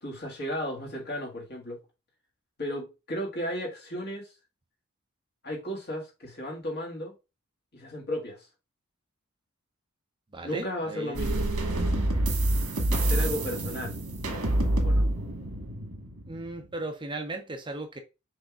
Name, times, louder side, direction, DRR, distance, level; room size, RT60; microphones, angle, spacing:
voice 1, 0.0-1.8 2.6-4.4 5.4-7.1 7.7-8.5 10.4-11.5 12.9-14.0 14.8-15.1, equal, 50° left, 1.8 m, -34 dB
voice 2, 10.3-11.2 16.3-18.0, right 2 dB, 20° right, 0.6 m, -36 dB
sound 1, 11.1-16.7, right 1 dB, 85° right, 1.4 m, -27 dB
6.3 x 3.4 x 2.4 m
head